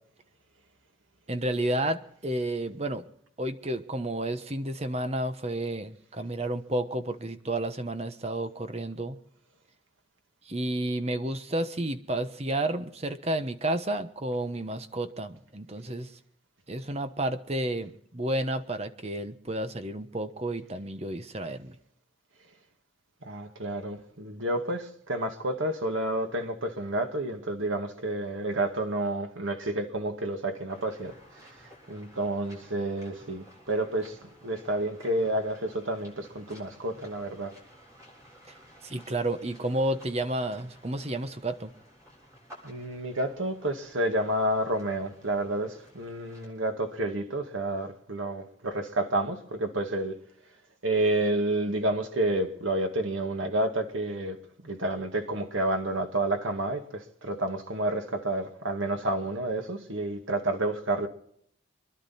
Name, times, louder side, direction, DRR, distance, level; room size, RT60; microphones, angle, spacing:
voice 1, 1.3-3.1 3.4-9.2 10.5-16.1 16.7-21.7 38.8-41.7, right 1 dB, 35° right, 1.1 m, -31 dB
voice 2, 23.2-31.1 31.9-34.2 34.4-37.5 42.6-50.2 50.8-54.4 54.6-61.1, right 1 dB, 85° right, 2.0 m, -30 dB
sound 1, 30.7-46.5, equal, 15° right, 7.4 m, -54 dB
26.0 x 11.5 x 4.3 m
head